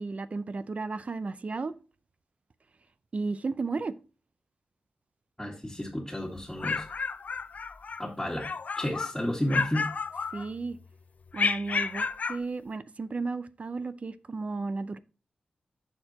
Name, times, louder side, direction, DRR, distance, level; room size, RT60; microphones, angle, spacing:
voice 1, 0.0-1.7 3.1-3.9 10.3-10.8 11.3-15.0, right 3 dB, 50° right, 0.5 m, -34 dB
voice 2, 5.4-6.9 8.0-8.5 8.8-9.9, left 1 dB, 10° left, 1.8 m, -32 dB
sound 1, 6.4-8.0 8.4-9.2 9.5-10.8 11.3-12.4, left 5 dB, 60° left, 0.5 m, -31 dB
12.5 x 4.4 x 2.8 m
cardioid pair, 70°, 3 cm